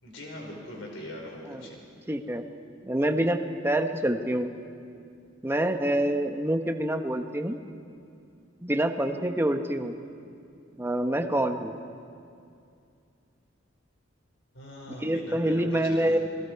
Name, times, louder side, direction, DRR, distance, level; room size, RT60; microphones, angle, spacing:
voice 1, 0.0-1.8 14.5-16.2, left 1 dB, 70° left, -1 dB, 4.9 m, -41 dB
voice 2, 2.1-2.4 2.8-4.5 5.4-7.6 8.6-10.0 10.8-11.7 15.0-16.2, right 1 dB, 10° right, 6 dB, 1.0 m, -26 dB
29.5 x 20.5 x 4.7 m, 2.4 s
head